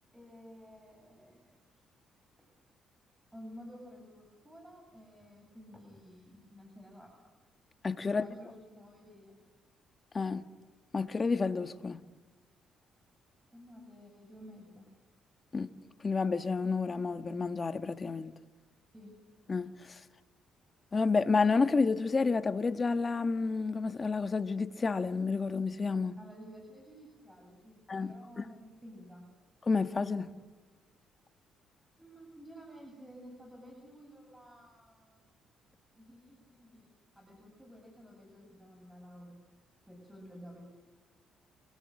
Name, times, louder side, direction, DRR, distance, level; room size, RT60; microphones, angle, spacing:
voice 1, 0.1-1.8 2.4-2.5 3.3-7.3 8.0-9.4 13.5-14.9 18.9-19.2 26.2-29.3 32.0-35.3 35.9-39.4 39.9-40.7, equal, 5° right, 7.6 m, -52 dB
voice 2, 7.8-8.2 10.1-10.4 10.9-12.0 15.5-15.7 16.0-18.3 19.5-20.0 20.9-26.1 27.9-28.5 29.6-30.3, left 4 dB, 30° left, 1.5 m, -30 dB
28.5 x 23.5 x 8.9 m
cardioid pair, 90°, 0 cm